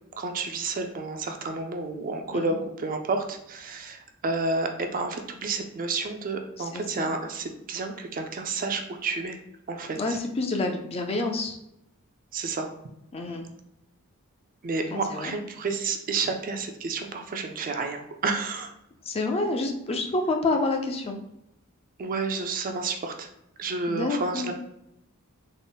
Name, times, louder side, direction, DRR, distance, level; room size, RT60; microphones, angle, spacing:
voice 1, 0.2-9.4 9.7-10.2 12.3-12.7 14.6-18.7 22.0-23.3 23.6-24.5, right 3 dB, 40° right, 5 dB, 0.4 m, -30 dB
voice 2, 6.6-7.1 10.0-11.6 13.1-13.5 14.9-15.4 19.0-21.2 23.9-24.5, left 2 dB, 25° left, 3 dB, 0.4 m, -28 dB
3.7 x 2.0 x 3.9 m, 0.82 s
head